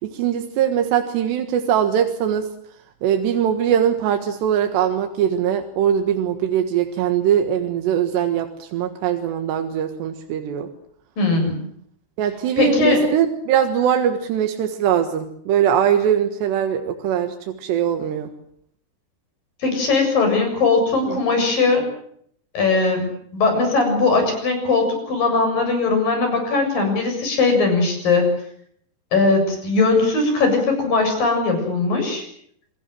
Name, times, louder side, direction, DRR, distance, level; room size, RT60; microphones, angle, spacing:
voice 1, 0.0-2.5 3.0-10.7 12.2-18.3 21.1-21.2, right 9 dB, 85° right, 5 dB, 3.8 m, -21 dB
voice 2, 11.2-11.6 12.6-13.0 19.6-21.8 22.5-28.3 29.1-32.2, left 3 dB, 55° left, 5 dB, 8.9 m, -19 dB
27.0 x 20.5 x 7.7 m, 0.66 s
omnidirectional pair, 4.8 m